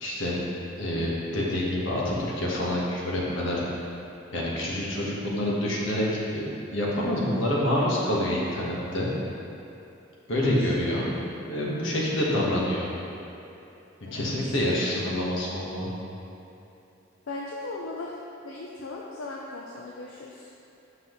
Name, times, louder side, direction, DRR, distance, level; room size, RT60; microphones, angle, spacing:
voice 1, 0.0-0.4 0.8-3.6 4.3-9.1 10.3-12.9 14.1-15.9, left 1 dB, 70° left, -5 dB, 1.3 m, -27 dB
voice 2, 10.3-10.7 14.0-14.3 17.3-18.1 18.4-20.5, left 2 dB, 85° left, -3 dB, 0.6 m, -38 dB
7.8 x 5.7 x 3.1 m, 2.9 s
head